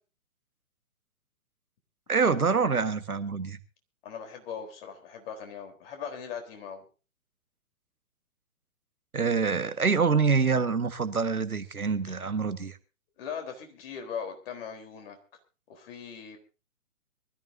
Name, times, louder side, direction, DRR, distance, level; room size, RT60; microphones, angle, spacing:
voice 1, 2.1-3.6 9.1-12.8, right 5 dB, 85° right, 1.7 m, -26 dB
voice 2, 4.0-6.8 12.1-12.2 13.2-15.2 15.7-16.4, left 7 dB, 40° left, 4.0 m, -39 dB
23.5 x 14.5 x 2.7 m
figure-of-eight pair, 130°, 43 cm